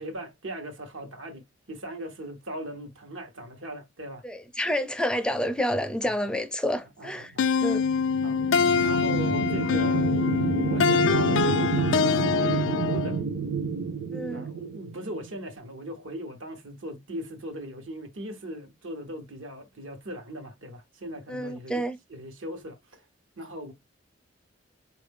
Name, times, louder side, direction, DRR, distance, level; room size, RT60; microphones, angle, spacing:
voice 1, 0.0-4.2 6.0-6.2 7.0-7.5 8.2-8.4 8.7-10.1 10.6-13.2 14.3-23.0 23.4-23.7, equal, 85° right, 1.1 m, -39 dB
voice 2, 4.2-7.3 7.6-7.8 14.1-14.5 21.3-22.0, equal, 5° left, 0.4 m, -29 dB
sound 1, 7.4-13.2, left 5 dB, 75° left, 0.4 m, -24 dB
sound 2, 7.6-15.3, right 4 dB, 65° right, 0.6 m, -29 dB
4.4 x 2.5 x 3.4 m
head